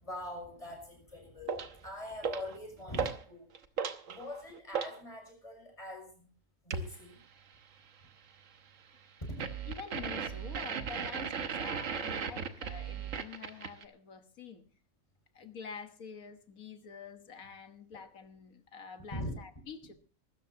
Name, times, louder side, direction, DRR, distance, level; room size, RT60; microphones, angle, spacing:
voice 1, 0.0-3.5 4.1-6.3 6.7-7.2 19.1-19.3, left 1 dB, 25° left, 7.0 m, -43 dB
sound 1, 1.5-1.8 2.2-2.6 2.9-3.2 3.5-5.0 6.7-6.9 9.4-13.8, right 6 dB, 70° right, 1.4 m, -36 dB
voice 2, 9.6-14.6 15.3-19.9, left 6 dB, 90° left, 1.8 m, -47 dB
24.5 x 13.5 x 2.8 m
omnidirectional pair, 1.4 m